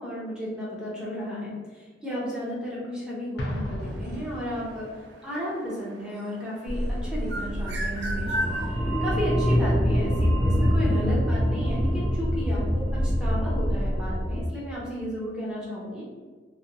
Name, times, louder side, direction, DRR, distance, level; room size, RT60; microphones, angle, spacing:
voice 1, 0.0-4.9 5.2-16.0, equal, 5° right, -8 dB, 0.7 m, -33 dB
Explosion, 3.4-5.0, equal, 65° left, 0.4 m, -34 dB
sound 1, 3.8-6.7 7.2-8.8, right 1 dB, 70° right, 0.4 m, -33 dB
sound 2, 6.7-14.4, equal, 50° right, 0.7 m, -25 dB
2.7 x 2.1 x 2.6 m, 1.5 s
head